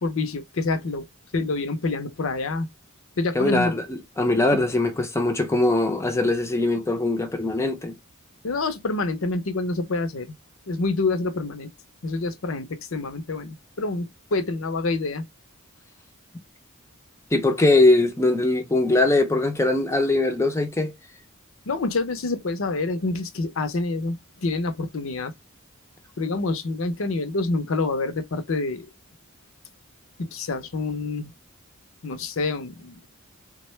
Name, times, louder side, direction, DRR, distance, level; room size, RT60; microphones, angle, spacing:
voice 1, 0.0-1.1 1.3-2.7 3.2-3.7 4.5-4.6 8.4-10.3 10.7-11.7 12.0-15.2 21.7-25.3 26.2-28.9 30.2-31.3 32.0-33.1, left 3 dB, 70° left, 0.6 m, -27 dB
voice 2, 3.3-8.0 17.3-20.9, left 2 dB, 15° left, 0.5 m, -21 dB
3.6 x 2.2 x 3.1 m
head